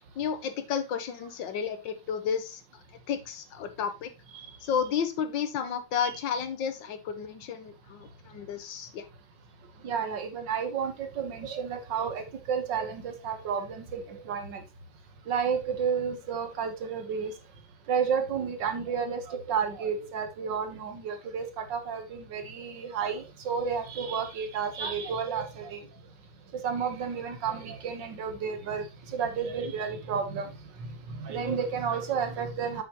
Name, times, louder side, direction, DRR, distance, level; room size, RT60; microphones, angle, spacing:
voice 1, 0.2-2.6 3.1-4.1 4.6-9.1, left 7 dB, 80° left, 9 dB, 1.7 m, -32 dB
voice 2, 9.8-14.6 15.3-17.3 17.9-21.5 21.7-25.8 26.6-28.9 29.1-30.5 31.1-32.8, right 6 dB, 75° right, 6 dB, 1.9 m, -31 dB
8.0 x 6.3 x 2.9 m, 0.26 s
omnidirectional pair, 2.0 m